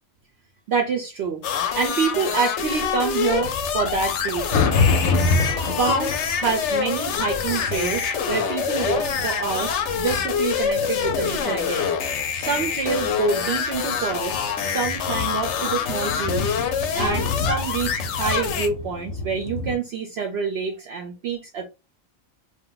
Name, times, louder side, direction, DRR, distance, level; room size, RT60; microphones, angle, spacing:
voice 1, 0.7-4.7 5.6-14.4 14.6-16.5 17.0-21.6, right 5 dB, 65° right, 0.7 m, -27 dB
sound 1, 1.4-18.7, left 7 dB, 65° left, 0.8 m, -26 dB
sound 2, 3.4-19.8, left 4 dB, 90° left, 1.0 m, -29 dB
sound 3, 3.8-10.2, right 5 dB, 85° right, 1.0 m, -42 dB
2.5 x 2.1 x 3.7 m
omnidirectional pair, 1.4 m